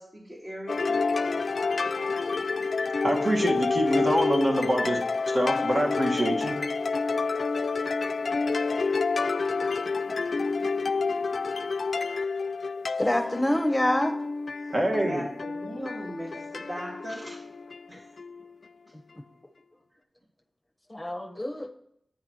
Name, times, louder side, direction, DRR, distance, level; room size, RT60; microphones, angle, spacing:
voice 1, 0.0-1.4 14.6-14.7 15.0-17.4 17.9-18.0, equal, 25° right, -3 dB, 1.5 m, -39 dB
sound 1, 0.7-18.5, left 4 dB, 70° left, 0.3 m, -29 dB
voice 2, 3.0-5.0 5.3-6.6 14.7-15.3, right 1 dB, 45° right, 1 dB, 1.4 m, -25 dB
voice 3, 13.0-14.1 15.7-15.8 18.9-19.0 20.9-21.7, left 1 dB, 15° left, 5 dB, 1.0 m, -26 dB
8.8 x 3.9 x 6.2 m, 0.71 s
wide cardioid pair, 70°, 0 cm